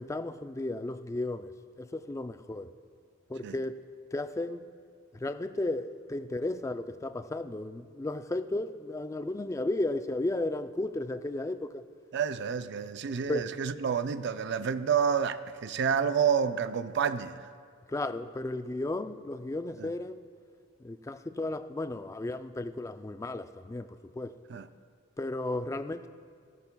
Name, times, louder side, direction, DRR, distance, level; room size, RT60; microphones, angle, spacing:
voice 1, 0.0-1.5 1.8-2.7 3.3-3.8 4.1-4.6 5.2-11.8 13.3-13.4 17.9-20.2 20.8-23.9 24.2-24.4 25.2-26.1, left 2 dB, 15° left, 0.3 m, -34 dB
voice 2, 12.1-17.5 19.8-19.9 24.5-24.7, right 7 dB, 60° right, 0.4 m, -29 dB
16.5 x 13.5 x 2.2 m
head